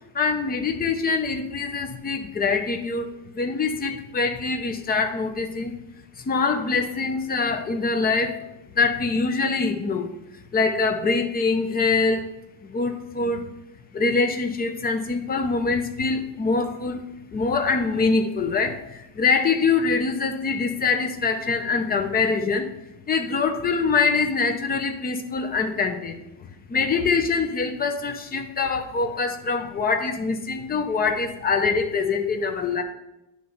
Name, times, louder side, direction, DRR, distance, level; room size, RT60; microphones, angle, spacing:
voice 1, 0.1-5.7 6.2-8.4 8.7-10.1 10.5-12.2 12.6-13.4 13.9-17.0 17.3-22.7 23.1-32.8, left 4 dB, 20° left, 5 dB, 0.6 m, -24 dB
9.7 x 3.3 x 5.4 m, 0.93 s
cardioid pair, 155°, 44 cm